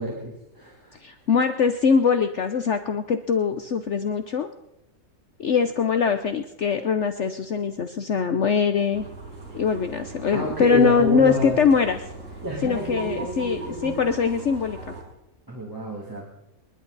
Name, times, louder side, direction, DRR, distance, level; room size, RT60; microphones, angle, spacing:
voice 1, 0.0-1.0 10.3-11.6 12.4-14.0 15.5-16.3, right 1 dB, 15° right, -3 dB, 2.8 m, -29 dB
voice 2, 1.0-4.5 5.4-9.0 9.5-12.0 12.6-14.9, left 6 dB, 55° left, 8 dB, 1.1 m, -22 dB
sound 1, 8.9-15.0, right 3 dB, 60° right, 4.9 m, -39 dB
28.0 x 11.5 x 4.1 m, 0.85 s
omnidirectional pair, 1.6 m